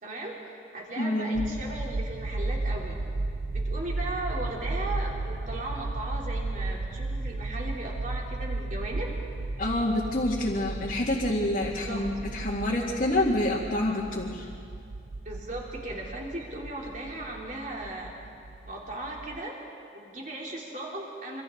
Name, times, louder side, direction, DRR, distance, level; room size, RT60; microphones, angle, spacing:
voice 1, 0.0-3.0 3.5-9.1 11.9-12.1 15.2-18.1 18.6-19.6 19.9-21.4, right 1 dB, 45° right, -2 dB, 3.5 m, -37 dB
voice 2, 1.0-1.5 9.6-14.5, left 1 dB, 45° left, -5 dB, 2.1 m, -27 dB
sound 1, 1.3-19.4, right 2 dB, 75° right, 0.7 m, -34 dB
26.5 x 25.0 x 4.0 m, 2.4 s
head